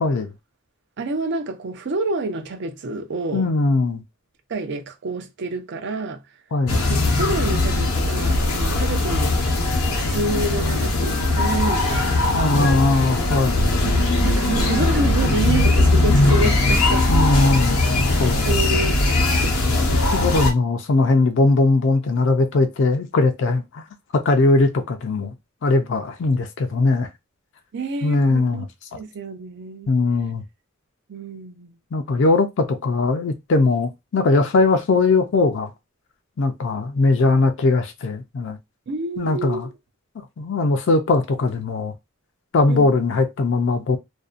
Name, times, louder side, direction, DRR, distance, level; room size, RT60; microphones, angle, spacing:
voice 1, 1.0-3.5 4.5-6.2 6.7-9.4 10.1-13.1 13.8-17.1 17.8-19.6 27.7-28.7 29.0-29.9 31.1-31.7 38.9-39.7 42.7-42.9, right 3 dB, 55° right, 0.5 m, -28 dB
voice 2, 3.3-4.0 6.5-6.8 12.3-13.7 17.1-17.8 18.2-18.5 20.1-23.8 24.1-25.3 25.6-27.1 28.0-28.7 29.9-30.4 31.9-35.7 36.4-38.6 39.2-39.7 40.4-41.9 42.5-44.0, left 3 dB, 60° left, 0.4 m, -20 dB
sound 1, 6.7-20.5, left 2 dB, 85° left, 0.7 m, -19 dB
2.5 x 2.1 x 2.4 m
head